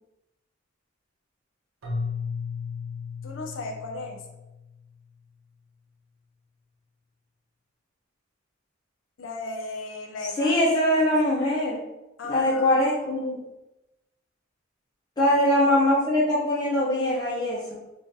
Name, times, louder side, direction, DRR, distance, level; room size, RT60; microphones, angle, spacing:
Keyboard (musical), 1.8-4.9, left 5 dB, 85° right, 0.8 m, -34 dB
voice 1, 3.2-4.2 9.2-10.6 12.2-12.7, left 2 dB, 70° left, 2 dB, 0.5 m, -36 dB
voice 2, 10.4-11.8 12.3-13.4 15.2-17.8, left 1 dB, 20° left, -7 dB, 0.6 m, -22 dB
3.8 x 2.4 x 2.6 m, 0.99 s
head